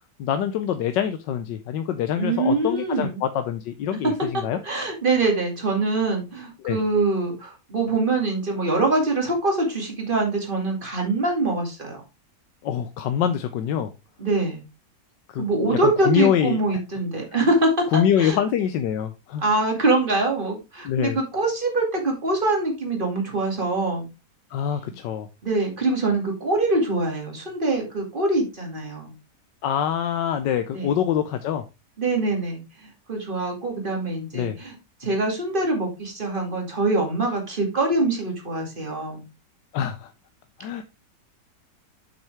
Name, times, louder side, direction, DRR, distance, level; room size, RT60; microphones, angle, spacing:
voice 1, 0.2-4.6 6.6-6.8 12.6-13.9 15.3-16.6 17.3-17.5 17.9-19.4 20.8-21.2 24.5-25.3 29.6-31.6 34.3-34.6 39.7-40.1 40.6-40.8, left 9 dB, 85° left, 8 dB, 1.4 m, -25 dB
voice 2, 2.2-3.2 4.6-12.0 14.2-14.6 15.4-18.4 19.4-24.1 25.4-29.1 30.7-30.9 32.0-34.7 35.0-39.2, right 2 dB, 30° right, 1 dB, 2.6 m, -24 dB
8.1 x 5.9 x 3.4 m, 0.26 s
omnidirectional pair, 1.9 m